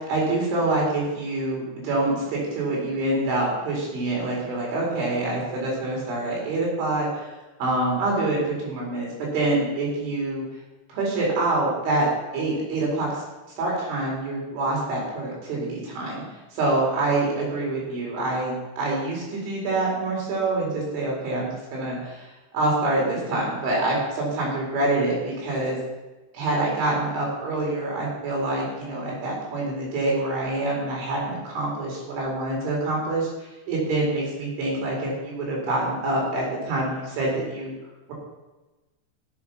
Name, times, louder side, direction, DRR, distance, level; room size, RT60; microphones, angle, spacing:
voice 1, 0.0-7.3 7.6-10.5 10.9-12.1 12.3-13.2 13.6-16.2 16.5-25.8 26.3-37.7, right 2 dB, 85° right, -3 dB, 6.5 m, -26 dB
14.5 x 7.9 x 5.9 m, 1.1 s
omnidirectional pair, 5.3 m